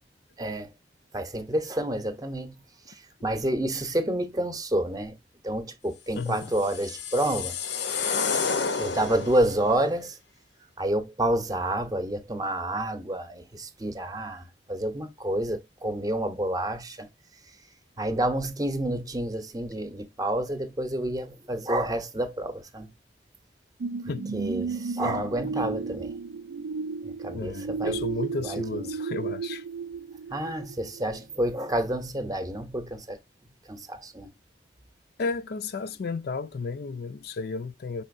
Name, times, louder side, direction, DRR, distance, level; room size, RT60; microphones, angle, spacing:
voice 1, 0.4-0.7 1.1-2.6 2.9-5.2 5.4-7.6 8.8-10.2 10.8-17.1 18.0-22.9 24.3-26.1 27.0-28.0 28.4-28.9 30.3-33.2 33.7-34.3, right 1 dB, 20° right, 0.7 m, -29 dB
voice 2, 6.1-6.5 24.1-24.3 25.0-25.2 27.3-29.6 35.2-38.0, left 4 dB, 60° left, 0.4 m, -33 dB
sound 1, 6.4-9.6, left 5 dB, 85° left, 0.8 m, -30 dB
sound 2, 23.8-31.2 31.7-31.8, right 5 dB, 75° right, 0.4 m, -33 dB
5.5 x 3.9 x 2.5 m
head